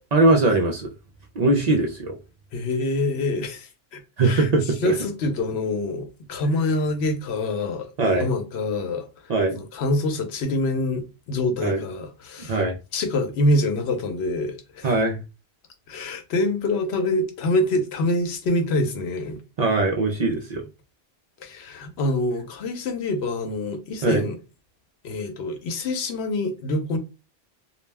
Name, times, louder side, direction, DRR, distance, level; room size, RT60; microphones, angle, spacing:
voice 1, 0.1-0.9 1.4-2.2 4.2-4.9 8.0-8.3 9.3-9.6 11.6-11.8 12.4-12.7 14.8-15.2 19.6-20.6 24.0-24.2, right 2 dB, 55° right, 0.5 m, -21 dB
voice 2, 2.5-4.5 4.8-9.1 9.5-12.6 12.9-14.9 15.9-19.4 21.4-24.3 25.0-27.0, left 2 dB, 85° left, 0.9 m, -25 dB
2.3 x 2.1 x 3.2 m
omnidirectional pair, 1.1 m